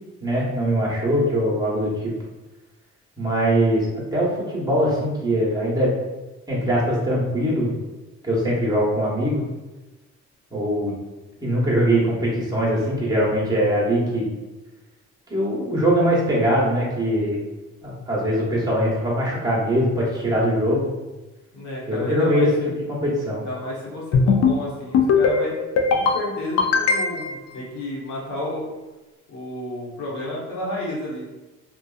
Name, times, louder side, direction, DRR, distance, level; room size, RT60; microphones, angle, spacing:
voice 1, 0.2-2.1 3.2-5.9 6.5-7.7 8.2-9.4 10.5-10.9 11.4-14.3 15.3-17.4 17.8-20.9 21.9-23.4, equal, 15° right, -5 dB, 1.0 m, -22 dB
voice 2, 21.5-22.7 23.4-25.5 25.9-28.7 29.3-31.2, left 1 dB, 75° left, -5 dB, 1.0 m, -31 dB
sound 1, 24.1-24.6 24.9-25.4 25.8-26.2 26.6-27.4, left 5 dB, 60° left, 0.4 m, -18 dB
2.6 x 2.3 x 2.4 m, 1.1 s
cardioid pair, 90°, 30 cm